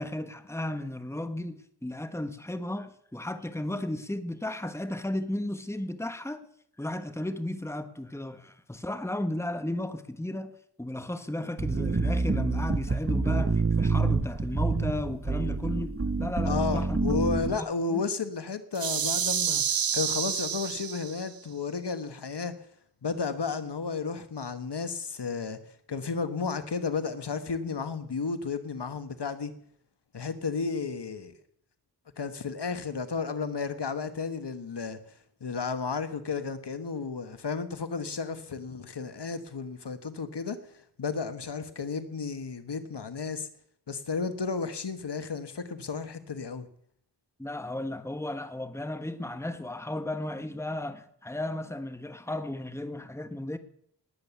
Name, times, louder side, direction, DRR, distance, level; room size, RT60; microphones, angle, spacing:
voice 1, 0.0-6.4 6.8-10.5 10.8-17.0 17.4-18.0 47.4-53.6, left 1 dB, 5° left, 1.3 m, -34 dB
sound 1, 11.6-17.6, right 4 dB, 35° right, 1.2 m, -27 dB
voice 2, 16.4-22.5 23.0-25.6 25.9-29.5 30.1-31.3 32.2-43.5 43.9-46.7, left 5 dB, 90° left, 1.3 m, -33 dB
sound 2, 18.7-21.3, right 8 dB, 60° right, 0.6 m, -29 dB
19.5 x 8.9 x 7.0 m
wide cardioid pair, 65°, 40 cm